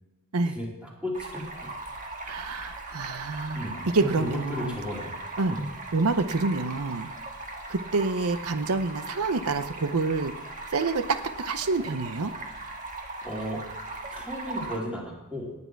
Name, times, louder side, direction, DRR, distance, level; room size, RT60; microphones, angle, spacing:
voice 1, 0.5-1.7 3.5-5.7 13.2-13.6 14.1-15.6, equal, 5° right, -3 dB, 2.8 m, -34 dB
Stream, 1.1-14.8, right 2 dB, 35° right, 1.6 m, -39 dB
voice 2, 2.3-4.7 5.4-5.6 5.9-7.1 7.7-10.3 10.7-12.3, right 3 dB, 85° right, 10 dB, 0.7 m, -27 dB
18.5 x 8.7 x 4.6 m, 1.1 s
head